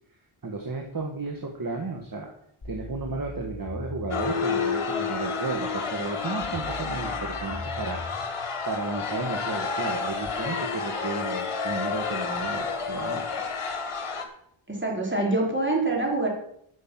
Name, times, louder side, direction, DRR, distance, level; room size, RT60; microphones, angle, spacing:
voice 1, 0.4-2.3 2.6-8.4 8.7-13.5, right 3 dB, 40° right, 2 dB, 1.6 m, -33 dB
sound 1, 2.6-4.6 6.4-8.4 10.3-10.4, left 2 dB, 55° left, 3.0 m, -39 dB
sound 2, 4.1-14.2, left 5 dB, 85° left, 1.6 m, -30 dB
voice 2, 14.7-16.3, right 2 dB, 20° right, -2 dB, 4.4 m, -25 dB
11.5 x 6.4 x 7.5 m, 0.70 s
wide cardioid pair, 70°, 50 cm